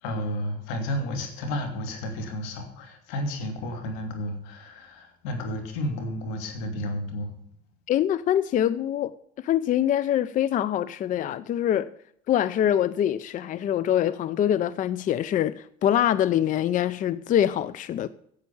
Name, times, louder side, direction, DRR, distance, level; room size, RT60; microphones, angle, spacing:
voice 1, 0.0-7.3, left 1 dB, 90° left, 2.9 m, -32 dB
voice 2, 7.9-9.1 9.4-11.9 12.3-18.1, left 10 dB, 40° left, 0.5 m, -24 dB
10.5 x 8.2 x 7.0 m
cardioid pair, 115°, 20 cm